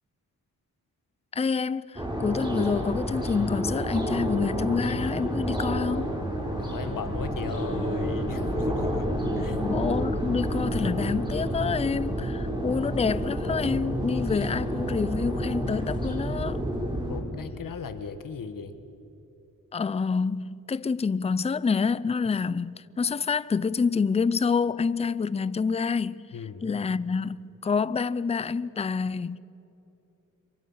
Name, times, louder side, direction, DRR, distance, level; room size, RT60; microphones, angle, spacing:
voice 1, 1.3-6.1 9.6-16.6 19.7-26.3 26.6-29.4, left 5 dB, 20° left, 0.4 m, -27 dB
sound 1, 1.9-17.2, equal, 15° right, 3.8 m, -29 dB
voice 2, 6.6-9.1 9.4-9.7 17.1-18.7 26.3-26.6, left 6 dB, 70° left, 1.5 m, -37 dB
27.0 x 23.5 x 5.7 m
cardioid pair, 90°, 34 cm